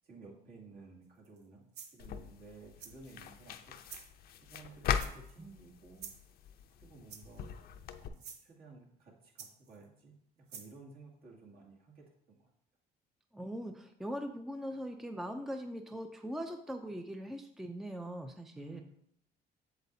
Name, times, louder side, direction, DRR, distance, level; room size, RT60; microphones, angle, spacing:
voice 1, 0.0-3.8 4.5-6.1 6.8-7.7 8.0-12.5 18.5-18.8, right 4 dB, 60° right, -3 dB, 2.3 m, -55 dB
sound 1, 1.2-1.4 1.7-2.1 2.8-3.2 3.8-4.1 5.0-5.4 6.0-6.3 7.1-7.5 8.1-8.4 9.4-9.8 10.5-10.7, right 6 dB, 75° right, 1.0 m, -49 dB
sound 2, 2.0-8.1, left 8 dB, 65° left, 0.6 m, -40 dB
voice 2, 13.3-18.8, equal, ahead, 6 dB, 0.5 m, -41 dB
7.9 x 7.3 x 2.7 m, 0.70 s
cardioid pair, 110°, 17 cm